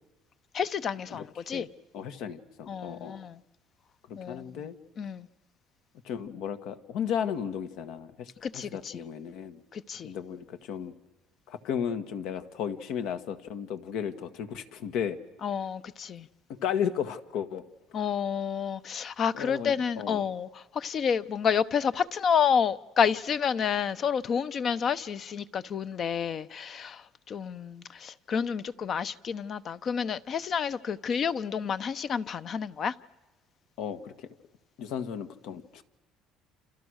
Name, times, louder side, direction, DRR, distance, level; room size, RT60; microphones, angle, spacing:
voice 1, 0.5-1.7 2.7-3.4 4.2-4.7 5.0-5.3 8.4-8.9 9.7-10.1 15.4-16.3 17.9-32.9, left 7 dB, 40° left, 0.9 m, -29 dB
voice 2, 1.1-1.7 1.9-3.2 4.1-4.8 6.0-9.6 10.0-10.9 11.5-15.2 16.5-17.7 19.3-20.2 33.8-34.3 34.8-35.8, left 8 dB, 70° left, 1.7 m, -34 dB
29.0 x 28.5 x 6.5 m
cardioid pair, 140°, 0 cm